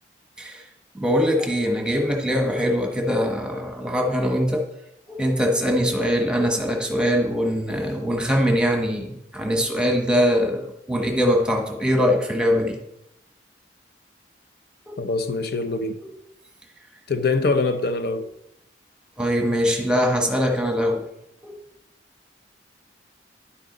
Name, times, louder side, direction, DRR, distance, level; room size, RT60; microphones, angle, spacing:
voice 1, 0.9-4.6 5.1-12.8 14.9-15.0 19.2-21.1 21.4-21.6, equal, 5° right, 3 dB, 1.3 m, -22 dB
voice 2, 15.0-16.0 17.1-18.3, left 3 dB, 60° left, 9 dB, 0.6 m, -23 dB
10.5 x 7.5 x 3.9 m, 0.81 s
head